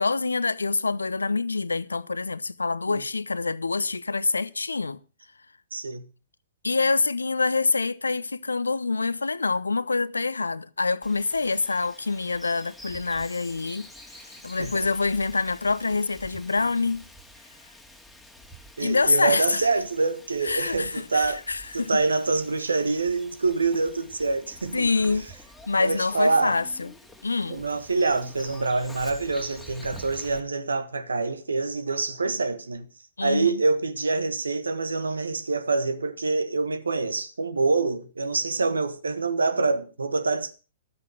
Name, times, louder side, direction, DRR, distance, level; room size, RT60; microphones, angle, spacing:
voice 1, 0.0-5.0 6.6-13.9 14.4-17.0 18.8-19.7 20.4-22.0 24.7-25.3 25.7-26.9 27.2-27.6 33.2-33.6, left 3 dB, 75° left, 0.7 m, -26 dB
voice 2, 5.7-6.0 14.6-14.9 18.8-21.4 21.7-24.9 25.8-26.5 27.5-32.9 33.2-40.5, right 3 dB, 70° right, 1.5 m, -26 dB
Bird vocalization bird call bird song, 11.0-30.4, equal, ahead, 2.2 m, -48 dB
13.0 x 8.7 x 6.4 m
figure-of-eight pair, 110°, 0 cm